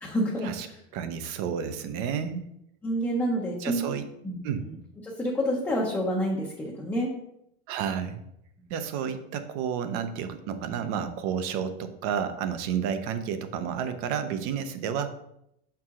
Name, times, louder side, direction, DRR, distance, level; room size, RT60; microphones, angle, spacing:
voice 1, 0.0-0.8 2.2-2.3 2.8-3.8 4.2-4.4 5.0-7.1, equal, 5° left, -4 dB, 0.6 m, -28 dB
voice 2, 0.9-2.5 3.6-4.1 4.4-4.7 7.7-8.2 8.7-15.1, right 7 dB, 40° right, 10 dB, 0.5 m, -31 dB
6.1 x 4.7 x 3.6 m, 0.78 s
supercardioid pair, 165°, 30 cm